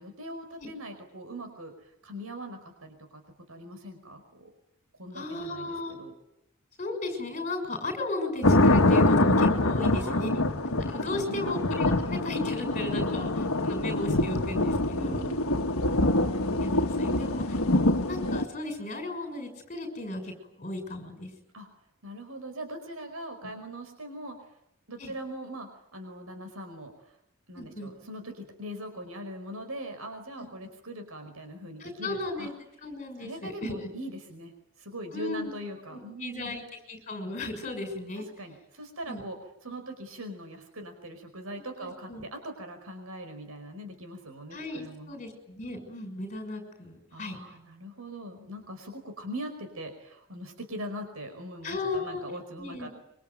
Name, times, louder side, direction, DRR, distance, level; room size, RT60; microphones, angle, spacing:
voice 1, 0.0-3.2 3.5-4.5 4.9-6.1 9.9-10.4 11.1-11.6 12.9-13.3 14.9-15.7 21.5-21.7 22.0-24.4 24.9-27.1 27.5-32.5 33.2-34.5 34.8-36.6 38.4-39.4 39.6-45.2 47.1-52.9, right 1 dB, 75° right, 6 dB, 5.1 m, -41 dB
voice 2, 5.1-6.0 6.8-10.3 10.9-13.3 13.6-15.2 16.6-17.6 18.1-20.3 20.6-21.3 23.4-23.5 25.0-25.1 27.5-27.9 30.4-30.5 31.8-32.5 32.8-33.9 35.1-35.5 35.9-38.3 39.1-39.2 41.8-42.2 44.5-47.4 51.6-52.2 52.6-52.9, left 2 dB, 30° left, 5 dB, 6.4 m, -35 dB
sound 1, 8.4-18.4, left 2 dB, 75° left, 1.6 m, -25 dB
26.0 x 24.5 x 9.3 m, 0.80 s
head